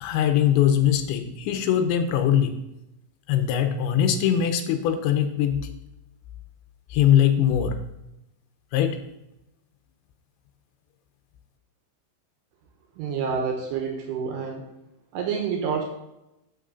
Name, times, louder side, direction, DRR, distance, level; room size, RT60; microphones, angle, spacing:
voice 1, 0.0-2.6 3.3-5.6 6.9-7.8 8.7-9.0, left 10 dB, 80° left, 6 dB, 2.9 m, -21 dB
voice 2, 13.0-14.6 15.1-15.9, right 6 dB, 80° right, 2 dB, 3.6 m, -28 dB
8.5 x 6.5 x 7.0 m, 0.90 s
omnidirectional pair, 5.7 m